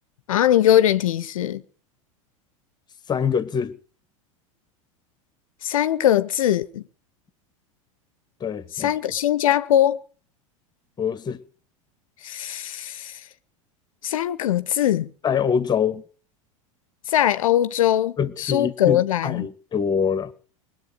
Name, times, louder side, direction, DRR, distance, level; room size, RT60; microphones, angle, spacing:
voice 1, 0.3-1.6 5.6-6.8 8.7-10.0 12.2-13.3 14.0-15.1 17.1-19.5, left 11 dB, 75° left, 0.6 m, -21 dB
voice 2, 3.1-3.8 8.4-8.9 11.0-11.4 15.2-16.0 18.2-20.3, left 7 dB, 25° left, 1.3 m, -24 dB
21.0 x 7.8 x 6.7 m
hypercardioid pair, 90°, 17 cm